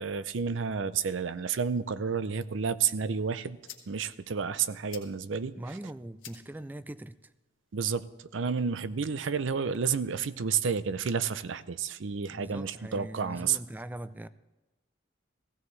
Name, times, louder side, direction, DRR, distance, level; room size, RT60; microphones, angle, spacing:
voice 1, 0.0-3.6 3.9-5.6 7.7-8.0 8.3-13.6, right 6 dB, 70° right, 0.5 m, -30 dB
sound 1, 3.0-9.0, left 9 dB, 70° left, 1.5 m, -55 dB
voice 2, 5.6-7.3 12.3-14.3, right 1 dB, 10° right, 0.3 m, -41 dB
16.0 x 16.0 x 3.2 m
head